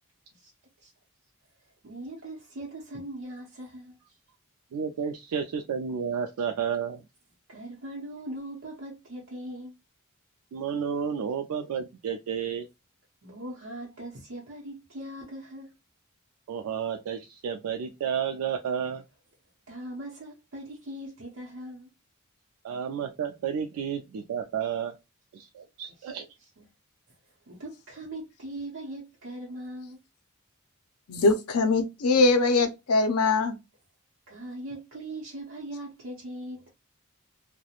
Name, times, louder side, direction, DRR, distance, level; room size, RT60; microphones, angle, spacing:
voice 1, 1.8-3.9 7.5-9.8 13.2-15.7 19.7-21.9 26.0-26.1 26.6-26.7 27.5-30.0 34.3-36.7, right 1 dB, 65° right, 0.7 m, -40 dB
voice 2, 4.7-7.0 10.5-12.7 16.5-19.0 22.6-25.0 25.3-26.3, right 7 dB, 85° right, 0.3 m, -31 dB
voice 3, 31.1-33.5, left 3 dB, 90° left, 0.5 m, -22 dB
2.4 x 2.1 x 2.8 m
head